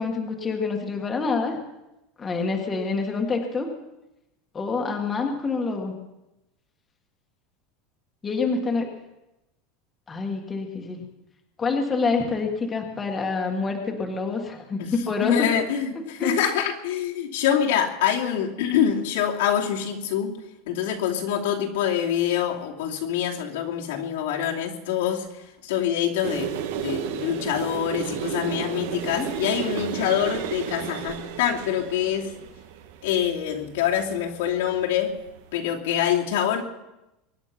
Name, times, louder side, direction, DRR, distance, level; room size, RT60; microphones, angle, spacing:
voice 1, 0.0-1.6 2.2-3.7 4.5-5.9 8.2-8.9 10.1-11.0 11.6-15.3 16.2-16.4 29.0-29.3, left 4 dB, 15° left, 2 dB, 1.6 m, -27 dB
voice 2, 15.2-20.3 20.7-25.3 25.6-32.3 33.0-35.1 35.5-36.6, left 9 dB, 85° left, -1 dB, 2.8 m, -25 dB
sound 1, 26.2-35.6, right 8 dB, 70° right, 1.5 m, -34 dB
23.5 x 10.5 x 5.9 m, 0.95 s
supercardioid pair, 180°, 0 cm